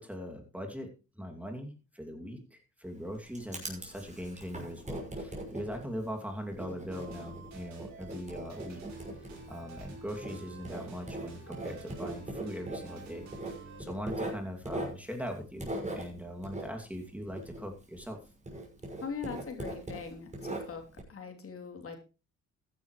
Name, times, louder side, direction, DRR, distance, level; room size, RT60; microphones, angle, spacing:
voice 1, 0.0-8.8 9.5-18.2, equal, 5° right, 3 dB, 2.5 m, -41 dB
Writing, 2.8-18.2 18.4-21.0, right 1 dB, 25° right, 6.0 m, -41 dB
sound 1, 6.9-13.8, right 4 dB, 65° right, 5.6 m, -49 dB
voice 2, 19.0-20.8 21.1-22.0, left 5 dB, 50° left, 3 dB, 3.2 m, -41 dB
14.5 x 11.0 x 3.2 m, 0.32 s
cardioid pair, 90°, 30 cm